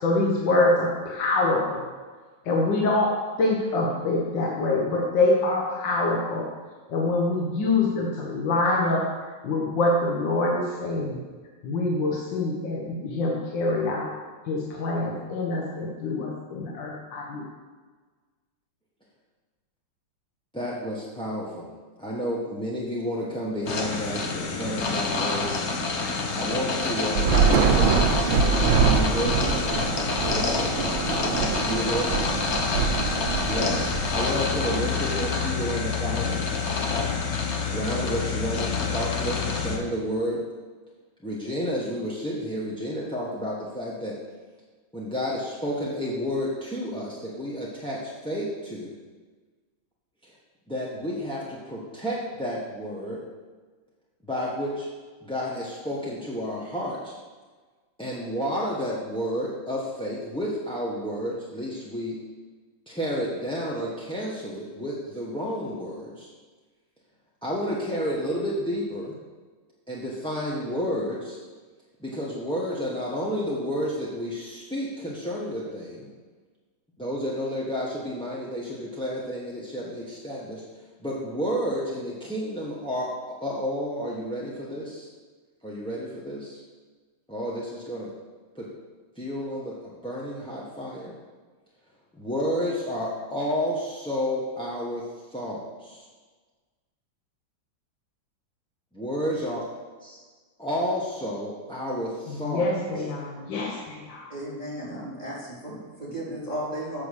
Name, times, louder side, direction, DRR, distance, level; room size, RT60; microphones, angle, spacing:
voice 1, 0.0-1.9 2.5-3.1 3.4-6.5 6.9-9.1 9.4-11.2 11.6-14.1 14.5-17.4 102.5-104.3, left 2 dB, 70° left, -2 dB, 1.8 m, -25 dB
voice 2, 20.5-21.7 22.0-25.5 26.3-28.0 28.8-29.6 30.1-30.7 31.6-32.3 33.4-36.4 37.6-40.4 41.2-44.1 44.9-48.9 50.2-50.3 50.7-53.2 54.2-54.9 55.2-57.1 58.0-62.2 62.9-66.3 67.4-69.2 69.9-71.4 72.0-76.1 77.0-80.6 81.0-83.1 83.4-85.1 85.6-86.6 87.3-88.1 88.5-88.7 89.2-91.1 92.1-96.1 98.9-99.6 100.0-100.2 100.6-102.7 102.9-103.0, equal, 5° left, -6 dB, 0.7 m, -31 dB
sound 1, 23.7-39.8, left 4 dB, 45° left, 1.0 m, -27 dB
Thunder / Rain, 27.1-34.7, right 6 dB, 85° right, 1.5 m, -24 dB
voice 3, 104.3-107.0, right 1 dB, 20° left, -6 dB, 3.3 m, -34 dB
8.2 x 6.2 x 6.5 m, 1.4 s
omnidirectional pair, 2.1 m